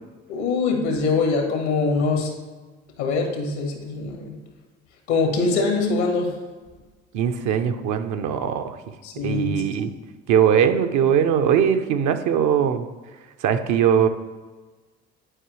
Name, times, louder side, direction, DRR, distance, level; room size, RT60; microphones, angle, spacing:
voice 1, 0.3-2.3 3.0-4.3 5.1-6.3 9.0-9.6, left 4 dB, 85° left, 2 dB, 1.5 m, -23 dB
voice 2, 7.1-8.8 9.2-9.9 10.3-12.9 13.4-14.1, right 8 dB, 60° right, 8 dB, 0.7 m, -20 dB
9.9 x 4.7 x 3.1 m, 1.3 s
hypercardioid pair, 65°, 34 cm